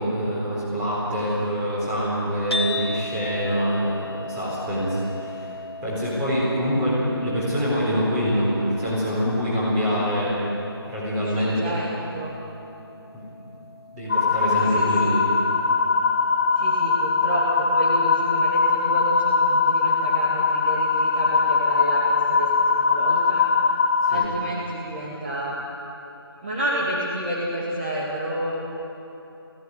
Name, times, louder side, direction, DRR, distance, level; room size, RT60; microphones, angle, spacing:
voice 1, 0.0-5.6 5.8-10.3 10.8-11.7 13.9-15.3 24.0-24.3, equal, 10° right, -8 dB, 4.1 m, -25 dB
sound 1, 2.5-18.7, left 2 dB, 75° left, 2.1 m, -38 dB
voice 2, 11.3-12.3 14.5-15.2 16.6-23.4 24.1-25.6 26.4-28.6, right 1 dB, 30° right, -5 dB, 2.3 m, -30 dB
sound 2, 14.1-24.2, left 4 dB, 20° left, 0.6 m, -21 dB
17.0 x 16.5 x 9.5 m, 2.9 s
figure-of-eight pair, 170°, 14 cm